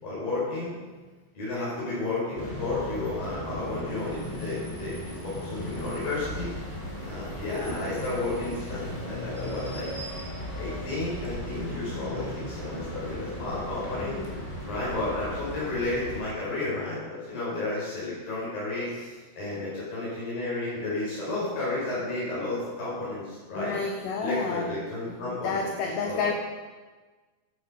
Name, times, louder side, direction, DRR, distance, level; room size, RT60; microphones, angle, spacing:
voice 1, 0.0-0.7 1.3-6.5 7.0-9.9 10.6-14.2 14.6-19.0 19.3-23.8 24.2-25.7 26.0-26.3, left 2 dB, 55° left, -7 dB, 6.7 m, -32 dB
sound 1, 2.4-16.2, equal, 15° left, 2.4 m, -37 dB
voice 2, 14.0-14.4 18.9-19.1 23.5-24.8 25.1-26.3, left 5 dB, 85° left, 3 dB, 1.8 m, -31 dB
12.5 x 9.2 x 5.4 m, 1.3 s
omnidirectional pair, 5.1 m